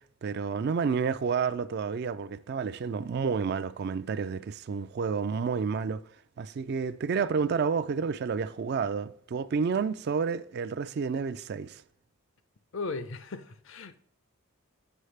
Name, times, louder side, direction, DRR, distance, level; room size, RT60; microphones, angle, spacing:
voice 1, 0.2-6.0 6.4-11.8, right 5 dB, 50° right, 0.3 m, -30 dB
voice 2, 12.7-14.0, left 3 dB, 60° left, 0.6 m, -37 dB
7.9 x 5.6 x 3.2 m
head